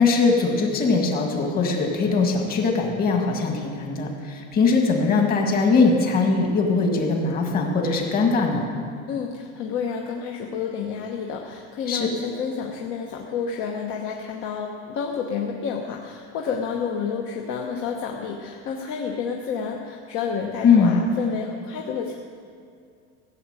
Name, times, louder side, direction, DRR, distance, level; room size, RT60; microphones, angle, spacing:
voice 1, 0.0-8.7 11.9-12.1 20.6-20.9, left 4 dB, 30° left, 2 dB, 1.9 m, -21 dB
voice 2, 9.1-22.1, left 6 dB, 45° left, 1 dB, 1.1 m, -30 dB
16.0 x 7.3 x 8.9 m, 2.3 s
cardioid pair, 175°, 29 cm